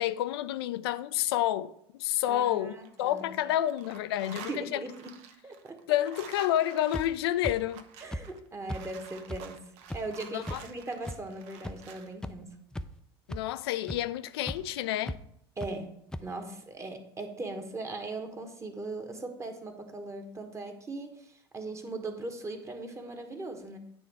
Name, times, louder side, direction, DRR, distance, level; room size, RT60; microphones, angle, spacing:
voice 1, 0.0-4.8 5.9-7.8 10.3-10.6 13.3-15.2, left 13 dB, 70° left, 0.4 m, -29 dB
voice 2, 2.3-3.4 4.2-5.1 5.4-5.8 8.0-9.6 9.9-12.6 15.6-23.8, right 2 dB, 20° right, 1.2 m, -39 dB
sound 1, 2.6-3.4 3.7-12.1, right 7 dB, 60° right, 0.8 m, -49 dB
sound 2, 6.9-7.0 7.4-7.5 8.1-8.2 8.7-8.8 9.3-9.4 9.9-10.0 10.5-10.6 11.1-11.2 11.6-11.7 12.2-12.3 12.7-13.0 13.3-13.4 13.9-14.0 14.5-14.6 15.1-15.2 15.6-15.7 16.1-16.2, equal, 5° left, 0.4 m, -35 dB
9.5 x 3.4 x 4.7 m
hypercardioid pair, 75°, 14 cm